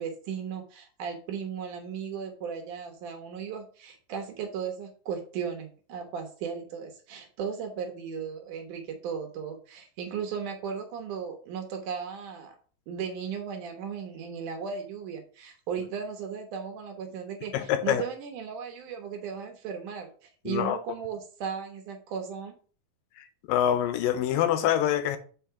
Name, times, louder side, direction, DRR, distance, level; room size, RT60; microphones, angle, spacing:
voice 1, 0.0-12.6 12.9-22.5, right 6 dB, 70° right, 2.2 m, -36 dB
voice 2, 17.5-18.0 20.5-20.8 23.2-25.2, left 10 dB, 80° left, 2.3 m, -25 dB
5.6 x 4.4 x 5.6 m
omnidirectional pair, 4.2 m